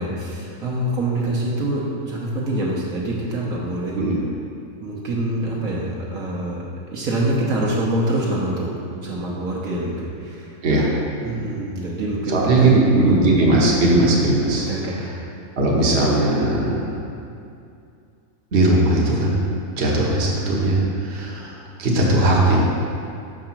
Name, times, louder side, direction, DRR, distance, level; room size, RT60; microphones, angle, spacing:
voice 1, 0.0-4.0 4.8-6.6 6.9-8.7 9.0-10.6 11.2-13.2 14.7-15.2, right 1 dB, 65° right, -4 dB, 1.4 m, -25 dB
voice 2, 12.3-14.7 15.6-17.0 18.5-19.5 19.8-21.5 21.8-22.6, right 2 dB, 50° right, -3 dB, 1.3 m, -18 dB
6.5 x 4.9 x 5.8 m, 2.5 s
omnidirectional pair, 1.6 m